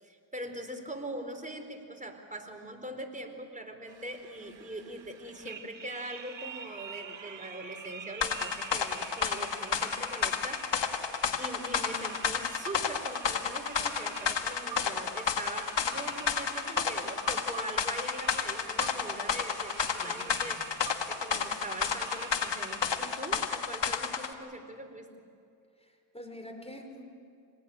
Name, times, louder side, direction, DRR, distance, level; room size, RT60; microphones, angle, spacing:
voice 1, 0.0-11.1 11.4-20.6 21.1-25.1, right 1 dB, 15° right, 4 dB, 4.5 m, -42 dB
sound 1, 3.9-23.7, right 6 dB, 80° right, 2.3 m, -46 dB
sound 2, 8.2-24.3, left 6 dB, 70° left, 1.7 m, -31 dB
voice 2, 20.0-20.6 25.8-27.0, equal, 15° left, 5 dB, 5.1 m, -47 dB
26.0 x 20.5 x 9.1 m, 2.4 s
cardioid pair, 45°, 45 cm